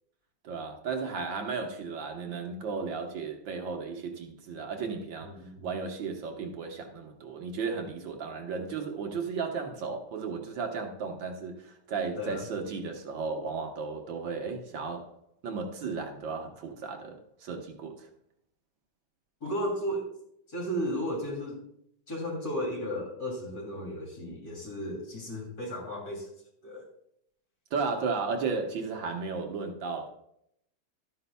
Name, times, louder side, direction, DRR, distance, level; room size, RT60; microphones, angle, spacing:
voice 1, 0.4-15.1 15.4-18.1 27.7-30.1, right 5 dB, 70° right, 1.8 m, -34 dB
voice 2, 5.2-5.7 12.2-12.5 19.4-20.1 20.5-21.6 22.1-26.3 26.6-26.8, equal, 45° left, 3.2 m, -34 dB
12.5 x 9.6 x 2.2 m
omnidirectional pair, 2.2 m